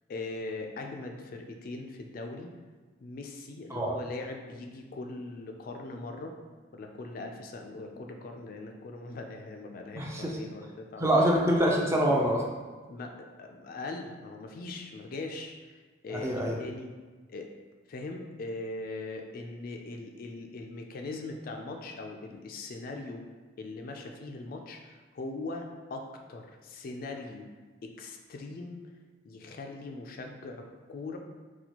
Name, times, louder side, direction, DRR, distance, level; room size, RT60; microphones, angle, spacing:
voice 1, 0.1-2.5 3.0-6.3 6.7-11.2 12.9-15.8 16.0-16.9 17.3-17.5 17.9-23.2 23.6-27.5 27.8-28.8 29.2-31.2, left 2 dB, 50° left, 3 dB, 0.3 m, -40 dB
voice 2, 10.0-10.4 11.0-12.4 16.1-16.6, equal, 15° right, -1 dB, 0.4 m, -25 dB
4.1 x 2.2 x 2.9 m, 1.3 s
head